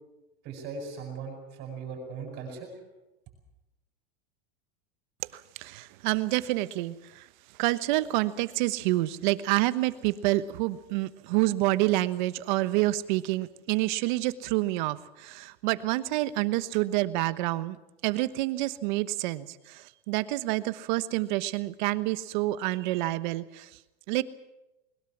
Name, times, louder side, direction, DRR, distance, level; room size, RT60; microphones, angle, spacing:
voice 1, 0.4-2.7, right 5 dB, 35° right, 1 dB, 7.8 m, -39 dB
voice 2, 5.3-7.3 7.6-17.8 18.0-23.7 24.1-24.2, right 18 dB, 55° right, 14 dB, 1.2 m, -28 dB
21.5 x 20.5 x 7.4 m, 0.94 s
supercardioid pair, 165°, 29 cm